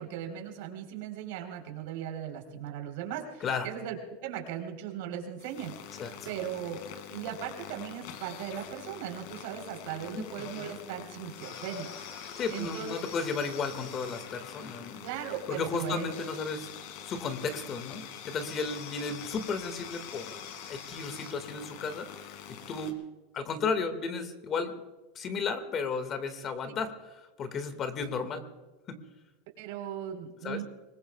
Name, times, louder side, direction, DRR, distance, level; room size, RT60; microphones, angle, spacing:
voice 1, 0.0-6.8 7.1-11.9 12.3-12.9 15.0-16.1 29.6-30.6, right 9 dB, 70° right, 3 dB, 4.1 m, -38 dB
sound 1, 5.4-22.9, left 8 dB, 60° left, 2.4 m, -45 dB
voice 2, 12.4-15.0 15.5-16.7 17.0-22.9 23.3-24.8 25.2-28.4 28.9-29.0 30.4-30.6, left 4 dB, 30° left, 8 dB, 1.9 m, -34 dB
25.0 x 21.0 x 2.4 m, 1.2 s
supercardioid pair, 150°, 0 cm